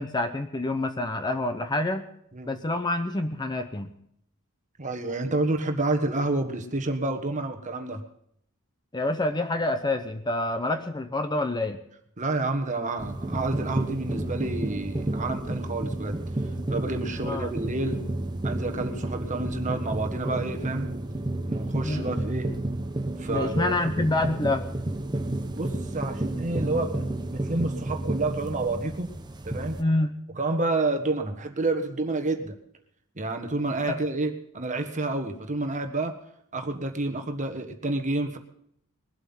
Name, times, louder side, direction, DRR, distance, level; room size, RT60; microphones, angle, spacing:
voice 1, 0.0-2.1 2.4-3.9 8.9-11.8 17.2-17.5 21.8-22.1 23.3-24.7 29.8-30.2 33.9-34.0, left 2 dB, 20° left, 7 dB, 0.8 m, -27 dB
voice 2, 4.8-8.0 12.2-16.2 16.7-18.0 18.4-20.9 21.5-22.5 23.2-23.7 25.5-27.0 27.3-29.1 29.4-29.8 30.4-32.6 33.2-36.1 36.5-38.4, right 2 dB, 35° right, 5 dB, 1.5 m, -29 dB
sound 1, 13.0-29.8, right 1 dB, 20° right, 1.0 m, -31 dB
21.5 x 8.0 x 5.6 m, 0.70 s
head